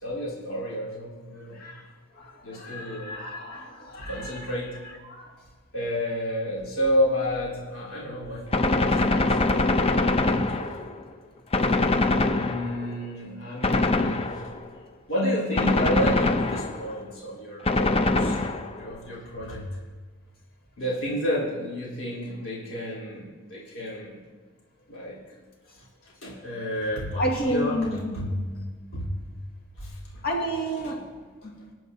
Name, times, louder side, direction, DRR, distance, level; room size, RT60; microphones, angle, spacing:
voice 1, 0.0-1.7 2.4-3.2 4.0-4.8 5.7-9.4 10.3-10.8 12.3-14.4 15.1-18.4 18.8-19.8 20.8-24.1 24.9-25.2 26.0-28.4 28.9-29.2 29.8-30.2 30.8-31.0, equal, 75° left, -7 dB, 3.7 m, -31 dB
voice 2, 2.2-4.4 5.0-5.3 9.2-9.3 9.7-10.0 10.5-10.6 27.2-28.4 30.2-31.0 31.4-31.5, equal, 50° left, -1 dB, 2.0 m, -31 dB
Gunshot gunfire, 8.5-11.0 11.5-12.9 13.6-14.7 15.6-16.9 17.7-18.9, left 2 dB, 30° left, 0.5 m, -23 dB
22.5 x 9.1 x 2.7 m, 1.4 s
head